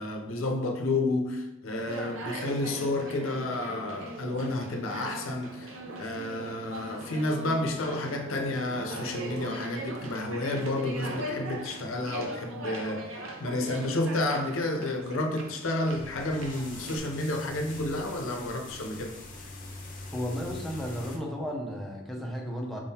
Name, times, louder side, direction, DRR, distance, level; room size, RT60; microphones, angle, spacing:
voice 1, 0.0-19.1, left 2 dB, 75° left, 3 dB, 0.6 m, -31 dB
Conversation, 1.7-17.0, right 1 dB, 75° right, 0.7 m, -40 dB
sound 1, 15.8-21.2, left 2 dB, 40° left, 0.7 m, -43 dB
voice 2, 20.1-22.8, equal, ahead, -1 dB, 0.6 m, -34 dB
4.8 x 3.6 x 2.7 m, 0.97 s
head